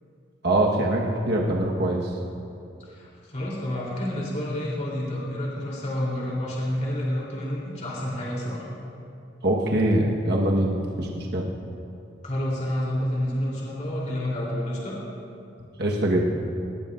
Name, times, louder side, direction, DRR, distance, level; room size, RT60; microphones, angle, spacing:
voice 1, 0.4-2.0 9.4-11.5 15.8-16.5, right 1 dB, 65° right, -1 dB, 1.3 m, -23 dB
voice 2, 2.8-8.7 12.2-15.0, left 1 dB, 40° left, -5 dB, 3.2 m, -29 dB
19.0 x 18.5 x 2.5 m, 2.6 s
head